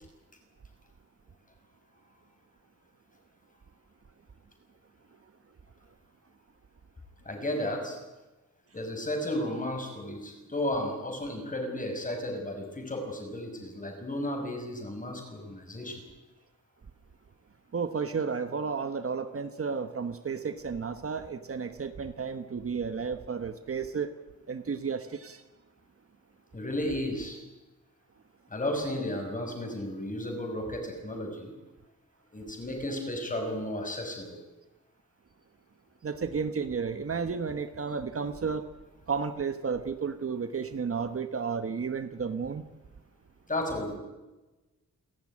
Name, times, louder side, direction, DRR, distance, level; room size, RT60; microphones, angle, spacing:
voice 1, 7.2-8.0 8.7-16.0 26.5-27.4 28.5-31.5 32.3-34.3 43.5-44.0, left 1 dB, 25° left, 3 dB, 6.1 m, -33 dB
voice 2, 17.7-24.1 24.5-25.4 36.0-38.6 39.1-42.6, right 5 dB, 45° right, 9 dB, 1.2 m, -32 dB
29.0 x 14.0 x 9.8 m, 1.1 s
wide cardioid pair, 165°, 31 cm